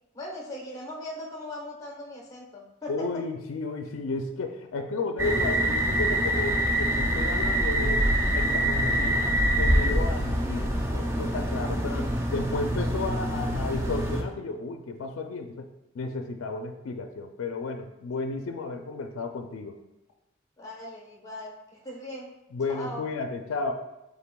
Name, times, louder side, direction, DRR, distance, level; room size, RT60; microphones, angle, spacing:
voice 1, 0.1-3.1 20.6-22.3 22.7-23.1, left 1 dB, 15° left, -2 dB, 1.0 m, -39 dB
voice 2, 2.9-8.1 8.3-9.3 9.6-15.7 15.9-19.7 22.5-23.7, left 3 dB, 90° left, 5 dB, 0.4 m, -33 dB
sound 1, 5.2-14.2, right 1 dB, 10° right, 0.4 m, -25 dB
5.7 x 3.9 x 2.2 m, 0.96 s
head